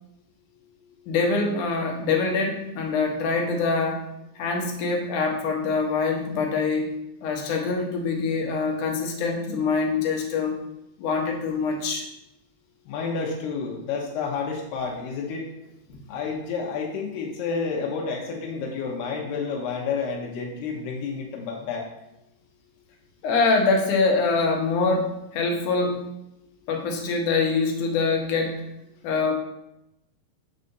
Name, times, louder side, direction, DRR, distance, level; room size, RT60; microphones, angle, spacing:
voice 1, 1.1-4.1 4.4-6.9 7.2-10.6 11.0-12.0 15.9-16.0 23.2-26.0 26.7-28.6 29.0-29.3, left 4 dB, 65° left, 1 dB, 2.3 m, -24 dB
voice 2, 12.9-15.5 16.1-21.9, left 5 dB, 85° left, -1 dB, 3.1 m, -30 dB
7.4 x 4.1 x 6.6 m, 0.87 s
omnidirectional pair, 4.5 m